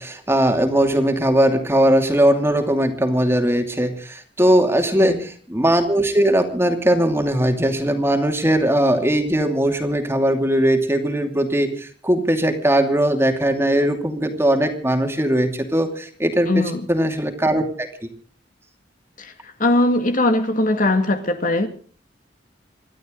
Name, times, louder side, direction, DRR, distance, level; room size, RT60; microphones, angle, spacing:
voice 1, 0.0-17.9, right 1 dB, 15° right, 4 dB, 2.7 m, -19 dB
voice 2, 16.5-16.8 19.2-19.3 19.6-21.7, left 2 dB, 45° left, 6 dB, 2.1 m, -20 dB
27.5 x 12.0 x 3.9 m, 0.43 s
head